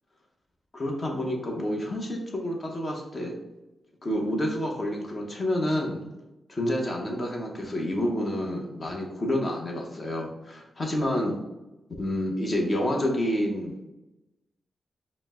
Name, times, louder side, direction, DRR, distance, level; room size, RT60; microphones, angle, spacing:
voice 1, 0.7-3.3 4.0-6.0 6.5-11.4 12.0-13.7, left 1 dB, 35° left, -1 dB, 0.7 m, -28 dB
5.0 x 2.1 x 3.5 m, 0.99 s
wide cardioid pair, 110°, 0 cm